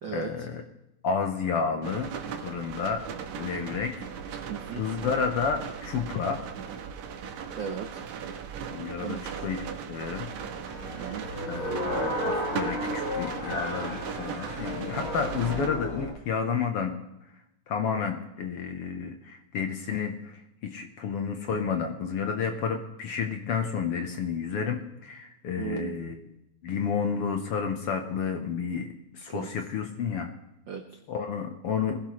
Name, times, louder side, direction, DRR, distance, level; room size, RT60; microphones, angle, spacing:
voice 1, 0.1-0.6 1.0-2.1 2.4-3.0 3.4-4.1 4.8-6.4 8.7-9.6 9.9-10.3 11.5-16.9 17.7-26.2 26.6-30.3 31.1-32.0, left 6 dB, 60° left, 5 dB, 1.7 m, -31 dB
sound 1, 1.8-15.7, right 7 dB, 75° right, 2.4 m, -38 dB
voice 2, 4.5-4.8 7.5-8.0 9.0-9.3 10.9-11.2 25.6-25.9 29.3-29.5 30.7-31.0, right 7 dB, 90° right, 5 dB, 1.0 m, -36 dB
sound 2, 10.6-16.1, equal, 40° left, 7.5 m, -33 dB
21.0 x 16.0 x 3.2 m, 0.87 s
omnidirectional pair, 3.5 m